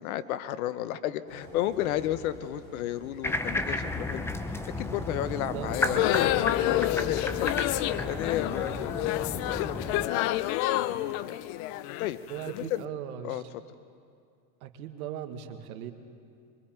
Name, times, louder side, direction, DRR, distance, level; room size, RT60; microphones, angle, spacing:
voice 1, 0.0-4.3 4.8-10.4 10.7-11.4 12.0-12.2 12.5-12.8 13.2-13.6, left 12 dB, 65° left, 13 dB, 1.0 m, -33 dB
sound 1, 1.3-12.3, equal, 20° left, 5.8 m, -53 dB
sound 2, 3.2-10.1, left 2 dB, 5° left, 0.7 m, -33 dB
voice 2, 5.3-6.3 12.3-13.4 14.6-15.9, right 10 dB, 70° right, 7 dB, 1.8 m, -39 dB
sound 3, 5.7-12.7, left 15 dB, 40° left, 0.5 m, -29 dB
24.5 x 24.0 x 4.5 m, 2.3 s
supercardioid pair, 125°, 45 cm